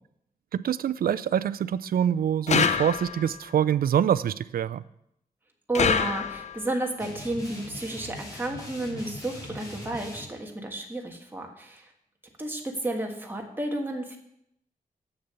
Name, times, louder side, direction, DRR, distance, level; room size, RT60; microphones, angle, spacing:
voice 1, 0.5-4.8, right 9 dB, 70° right, 16 dB, 0.4 m, -25 dB
sound 1, 2.5-3.4 5.7-6.7, left 6 dB, 50° left, 0.5 m, -25 dB
voice 2, 5.7-11.9 12.4-14.2, right 1 dB, 15° right, 1 dB, 1.4 m, -32 dB
sound 2, 7.0-10.2, left 1 dB, 25° left, 2.7 m, -41 dB
7.9 x 6.7 x 6.8 m, 0.77 s
wide cardioid pair, 160°, 16 cm